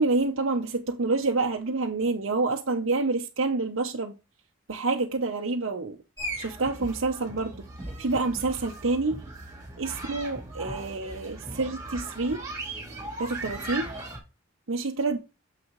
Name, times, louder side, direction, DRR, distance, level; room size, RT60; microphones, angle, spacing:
voice 1, 0.0-4.2 4.7-6.0 6.4-7.7 8.0-9.2 9.8-12.4 13.2-13.9 14.7-15.2, right 3 dB, 70° right, 0.9 m, -27 dB
sound 1, 6.2-14.2, right 2 dB, 15° right, 2.9 m, -38 dB
7.8 x 6.2 x 3.2 m
head